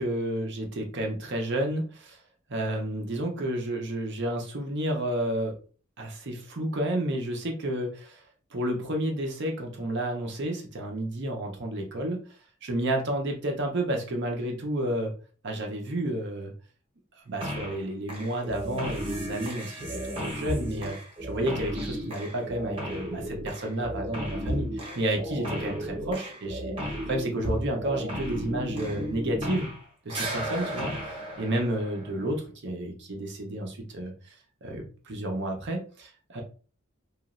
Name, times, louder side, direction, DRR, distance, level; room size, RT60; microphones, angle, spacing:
voice 1, 0.0-2.2 2.5-5.6 6.0-8.2 8.5-12.3 12.6-15.1 15.4-16.5 17.3-24.6 25.0-29.7 30.1-34.3 34.6-36.4, right 1 dB, 55° right, 2 dB, 0.7 m, -31 dB
sound 1, 17.4-17.8 18.1-29.8 30.1-32.3, equal, 25° right, 1.0 m, -34 dB
3.0 x 2.4 x 2.5 m, 0.38 s
head